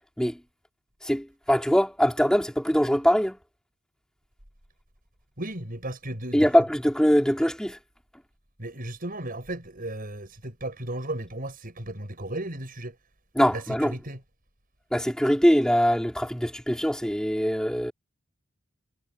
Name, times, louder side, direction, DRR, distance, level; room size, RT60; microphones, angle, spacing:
voice 1, 1.0-3.4 6.3-7.8 13.4-14.0 14.9-17.9, equal, 5° left, 3.8 m, -22 dB
voice 2, 5.4-6.5 8.6-13.0 13.5-14.2, right 1 dB, 45° right, 7.3 m, -35 dB
head